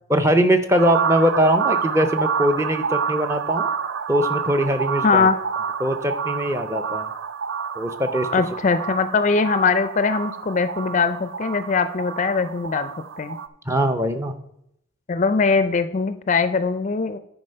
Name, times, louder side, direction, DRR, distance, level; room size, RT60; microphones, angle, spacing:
voice 1, 0.1-3.7 4.1-5.3 5.8-7.1 7.8-8.3 13.7-14.3, equal, 15° right, 8 dB, 0.6 m, -21 dB
sound 1, 0.7-13.5, right 6 dB, 75° right, 0.5 m, -28 dB
voice 2, 5.0-5.4 8.3-12.9 13.2-13.4 15.1-17.2, left 4 dB, 35° left, 11 dB, 0.4 m, -21 dB
9.7 x 4.6 x 5.5 m, 0.74 s
head